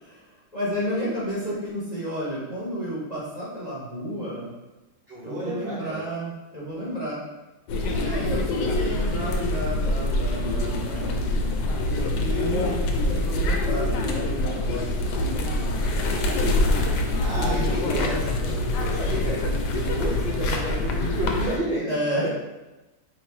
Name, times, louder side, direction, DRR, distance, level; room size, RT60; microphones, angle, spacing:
voice 1, 0.0-4.5 5.2-7.2 7.9-16.3 16.7-18.2 21.8-22.3, equal, 30° left, -8 dB, 0.9 m, -32 dB
voice 2, 5.1-6.1 17.2-22.3, right 1 dB, 55° right, -7 dB, 0.7 m, -32 dB
sound 1, 7.7-21.6, left 2 dB, 85° left, 1.2 m, -25 dB
3.1 x 3.0 x 4.5 m, 1.1 s
omnidirectional pair, 1.7 m